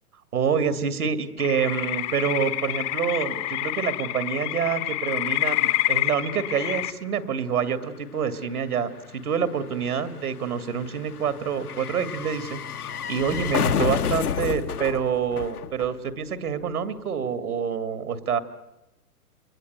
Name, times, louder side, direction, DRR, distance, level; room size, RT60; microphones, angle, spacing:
voice 1, 0.3-12.6 13.1-18.4, right 7 dB, 75° right, 11 dB, 2.5 m, -27 dB
sound 1, 1.4-6.9, left 17 dB, 25° left, 0.9 m, -27 dB
sound 2, 5.9-16.3 16.6-16.7, left 8 dB, 75° left, 1.4 m, -31 dB
29.5 x 22.5 x 8.1 m, 0.91 s
hypercardioid pair, 130°, 45 cm